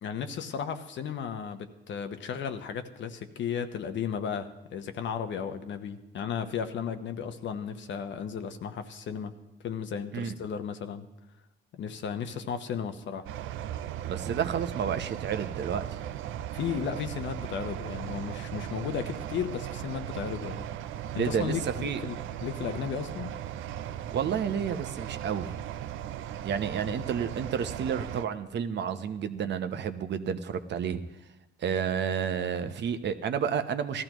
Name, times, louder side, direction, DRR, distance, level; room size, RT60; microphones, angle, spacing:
voice 1, 0.0-9.3 9.6-11.1 11.7-13.3 16.5-20.7 21.1-23.3 26.9-27.0, left 7 dB, 70° left, 8 dB, 1.0 m, -34 dB
sound 1, 13.3-28.3, right 11 dB, 80° right, 0.5 m, -37 dB
voice 2, 14.0-16.0 21.1-21.5 21.8-22.0 24.1-25.5 26.4-31.0 31.6-34.0, right 7 dB, 60° right, 9 dB, 0.8 m, -30 dB
18.0 x 13.5 x 3.0 m, 0.94 s
cardioid pair, 90°, 20 cm